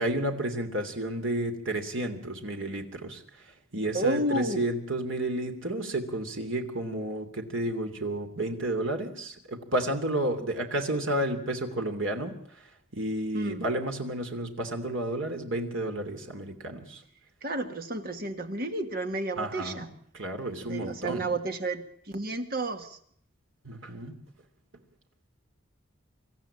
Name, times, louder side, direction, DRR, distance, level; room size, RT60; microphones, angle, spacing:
voice 1, 0.0-3.2 3.7-12.4 12.9-17.0 19.4-21.3 23.6-24.2, right 1 dB, 75° right, 5 dB, 2.9 m, -31 dB
voice 2, 3.9-4.6 13.3-13.6 17.4-19.9 20.6-23.0, right 2 dB, 45° right, 7 dB, 1.7 m, -31 dB
25.0 x 13.5 x 8.7 m, 0.65 s
head